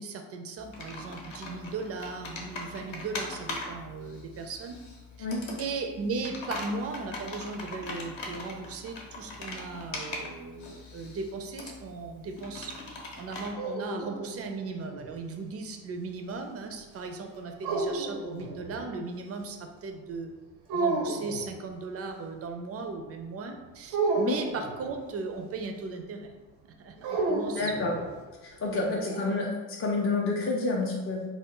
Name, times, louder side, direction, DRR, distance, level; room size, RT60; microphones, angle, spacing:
voice 1, 0.0-4.8 5.2-5.3 5.6-12.7 13.2-20.3 20.7-26.3 26.6-28.0 28.7-29.2, right 3 dB, 35° right, 5 dB, 0.4 m, -37 dB
Computer keyboard, 0.6-13.5, left 2 dB, 60° left, 0.7 m, -41 dB
sound 1, 13.3-15.2 17.6-18.9 20.7-21.5 23.9-25.0 27.0-28.2, right 3 dB, 80° right, 0.6 m, -31 dB
voice 2, 27.6-28.0 28.4-31.2, left 3 dB, 30° left, -2 dB, 0.4 m, -29 dB
2.0 x 2.0 x 3.7 m, 1.2 s
hypercardioid pair, 45°, 48 cm